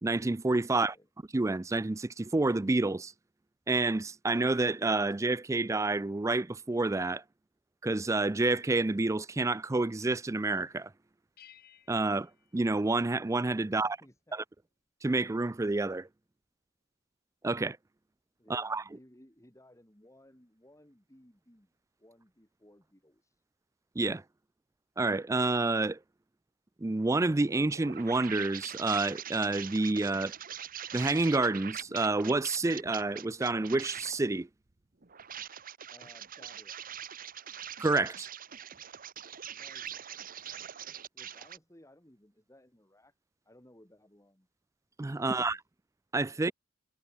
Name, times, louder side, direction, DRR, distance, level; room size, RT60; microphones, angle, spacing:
voice 1, 0.0-0.9 1.3-3.1 3.7-7.2 7.8-10.9 11.9-14.0 14.3-14.4 15.0-16.1 17.4-17.8 18.5-18.8 24.0-24.2 25.0-26.0 26.8-30.3 30.9-34.5 37.8-38.3 45.0-45.6 46.1-46.5, right 2 dB, 15° right, 0.4 m, -29 dB
voice 2, 0.7-1.1 13.7-14.4 18.4-21.7 22.0-23.3 35.9-36.8 39.5-39.9 41.1-43.1 43.5-44.5 45.1-45.6 46.3-46.5, left 1 dB, 15° left, 3.7 m, -59 dB
sound 1, 11.4-13.6, left 10 dB, 55° left, 3.4 m, -60 dB
sound 2, 27.4-34.2 35.0-41.6, right 9 dB, 50° right, 1.2 m, -43 dB
head